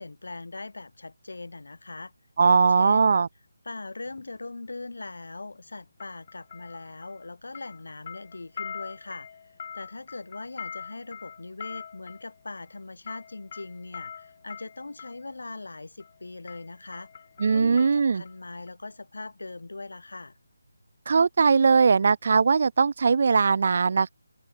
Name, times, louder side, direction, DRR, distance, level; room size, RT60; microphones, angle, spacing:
voice 1, 0.0-2.1 2.4-3.2 3.6-17.1 17.5-20.4, left 3 dB, 75° left, 4.0 m, -40 dB
voice 2, 2.4-3.3 17.4-18.2 21.1-24.1, right 5 dB, 40° right, 0.3 m, -20 dB
sound 1, 4.1-4.3 6.0-7.3 7.5-15.2 16.0-16.2 16.5-18.4 18.7-18.8, left 7 dB, 25° left, 3.8 m, -43 dB
open air
figure-of-eight pair, 175°, 0 cm